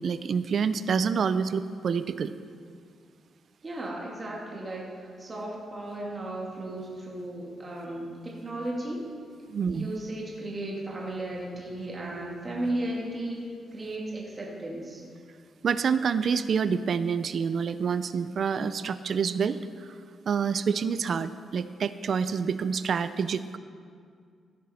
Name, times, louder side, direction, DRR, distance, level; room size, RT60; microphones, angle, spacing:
voice 1, 0.0-2.3 9.5-9.9 15.6-19.6 20.3-23.6, right 6 dB, 55° right, 14 dB, 0.4 m, -27 dB
voice 2, 3.6-9.0 9.7-13.4 13.7-15.0, right 1 dB, 25° right, -3 dB, 2.1 m, -35 dB
14.5 x 10.5 x 4.3 m, 2.2 s
cardioid pair, 125°, 0 cm